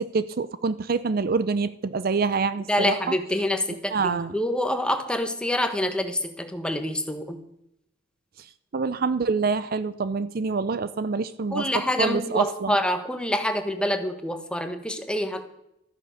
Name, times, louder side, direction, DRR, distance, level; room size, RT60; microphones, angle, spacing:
voice 1, 0.0-3.2 3.9-4.3 8.7-12.8, right 4 dB, 50° right, 15 dB, 0.5 m, -26 dB
voice 2, 2.7-7.4 11.5-15.4, left 1 dB, 5° left, 6 dB, 1.3 m, -26 dB
13.5 x 9.7 x 6.6 m, 0.80 s
head